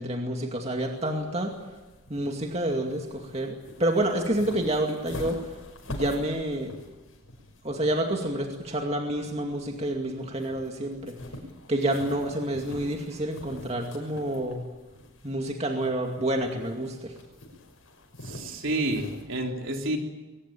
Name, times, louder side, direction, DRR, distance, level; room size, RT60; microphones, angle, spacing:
voice 1, 0.0-1.5 2.1-5.5 5.9-6.7 7.6-11.2 11.7-14.6 15.2-17.1, right 1 dB, 30° right, 2 dB, 2.3 m, -28 dB
sound 1, 0.7-19.2, left 1 dB, 75° left, 6.0 m, -45 dB
voice 2, 18.2-20.0, right 1 dB, 65° right, 2 dB, 3.6 m, -29 dB
22.5 x 20.0 x 8.9 m, 1.2 s
head